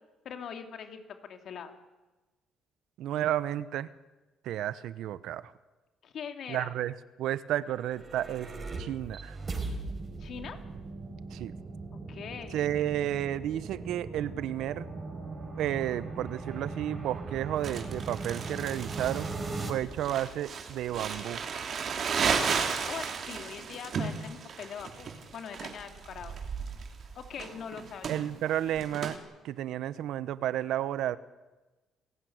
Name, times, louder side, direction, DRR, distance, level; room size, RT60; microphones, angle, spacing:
voice 1, 0.2-1.7 6.0-6.7 10.2-10.6 12.1-12.7 22.2-26.4 27.1-28.2, left 7 dB, 55° left, 6 dB, 3.1 m, -42 dB
voice 2, 3.0-3.9 4.4-5.5 6.5-8.5 8.8-9.4 11.3-11.5 12.5-14.9 15.6-19.3 19.7-21.4 28.1-29.2 29.4-31.2, right 12 dB, 75° right, 16 dB, 1.0 m, -32 dB
sound 1, 7.7-19.7, right 3 dB, 30° right, 4.8 m, -39 dB
Crumpling crinkling, 17.6-29.2, right 6 dB, 50° right, 3.1 m, -34 dB
28.0 x 15.5 x 9.6 m, 1.2 s
cardioid pair, 105°, 0 cm